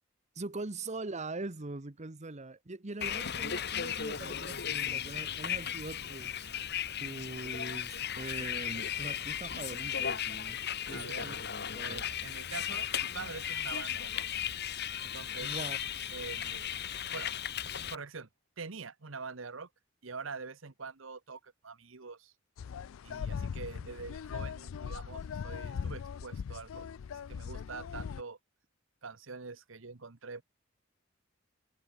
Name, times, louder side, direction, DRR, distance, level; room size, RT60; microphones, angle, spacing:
voice 1, 0.3-6.5 7.0-10.6 10.9-11.4 11.7-12.1 15.4-15.8, right 2 dB, 35° right, 1.1 m, -42 dB
Bus, 3.0-18.0, left 9 dB, 55° left, 2.0 m, -36 dB
voice 2, 10.9-11.3 11.8-14.3 15.0-15.6 16.1-16.7 17.1-17.3 17.9-18.3 18.6-19.7 20.0-22.3 23.0-26.9 27.3-28.4 29.0-30.4, right 4 dB, 70° right, 1.2 m, -44 dB
sound 1, 22.6-28.2, left 6 dB, 85° left, 0.4 m, -40 dB
head